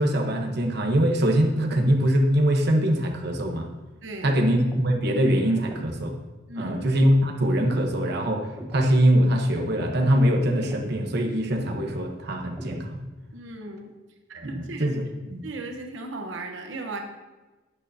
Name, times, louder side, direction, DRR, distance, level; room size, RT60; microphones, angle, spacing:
voice 1, 0.0-3.7 4.2-6.2 6.5-13.0 14.4-15.0 15.3-15.4, equal, 60° right, 2 dB, 1.0 m, -23 dB
voice 2, 4.0-4.4 6.5-6.8 13.3-13.9 14.3-14.9 15.4-17.0, right 2 dB, 85° right, 3 dB, 1.0 m, -36 dB
sound 1, 4.6-5.0 5.6-6.0 6.6-7.0 7.6-8.0 8.6-9.0 9.6-10.0 10.6-11.0 11.6-12.0 12.6-13.0, equal, 10° right, 0.8 m, -38 dB
12.0 x 8.9 x 2.8 m, 1.2 s
head